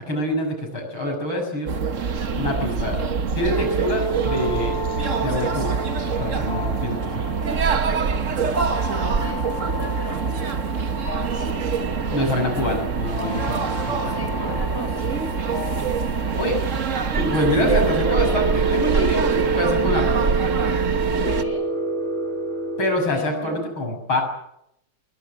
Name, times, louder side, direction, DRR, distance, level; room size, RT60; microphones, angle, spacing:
voice 1, 0.0-1.7 2.4-3.0 3.4-4.8 5.2-5.8 6.2-7.4 12.1-14.6 16.4-16.6 17.3-19.2 19.6-20.2 22.8-24.2, left 1 dB, 70° left, 3 dB, 7.7 m, -25 dB
sound 1, 1.7-21.4, right 5 dB, 40° right, 1.4 m, -24 dB
voice 2, 2.2-3.5 8.1-10.7 11.7-12.8 14.0-15.1 18.9-19.1 21.1-21.7 23.1-23.6, equal, 10° left, 3 dB, 6.6 m, -38 dB
sound 2, 3.5-23.0, right 2 dB, 30° left, 3.4 m, -30 dB
20.5 x 20.5 x 9.9 m, 0.79 s
omnidirectional pair, 2.3 m